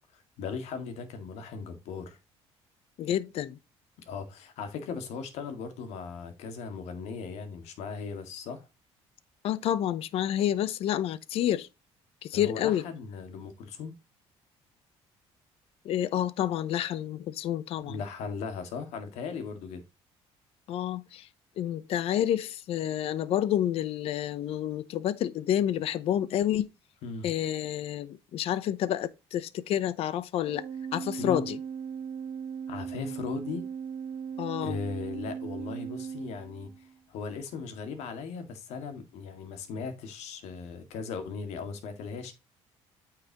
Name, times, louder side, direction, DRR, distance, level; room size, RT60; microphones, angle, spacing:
voice 1, 0.4-2.2 4.1-8.7 12.3-13.9 17.8-19.8 27.0-27.3 31.2-31.4 32.7-33.7 34.6-42.3, left 5 dB, 80° left, 2.0 m, -38 dB
voice 2, 3.0-3.6 9.4-11.7 12.2-12.8 15.8-18.0 20.7-21.3 21.6-26.7 27.2-30.6 30.9-31.6 34.4-34.8, left 11 dB, 60° left, 0.7 m, -29 dB
Organ, 30.4-37.0, right 7 dB, 75° right, 1.2 m, -38 dB
8.9 x 5.8 x 2.9 m
cardioid pair, 135°, 11 cm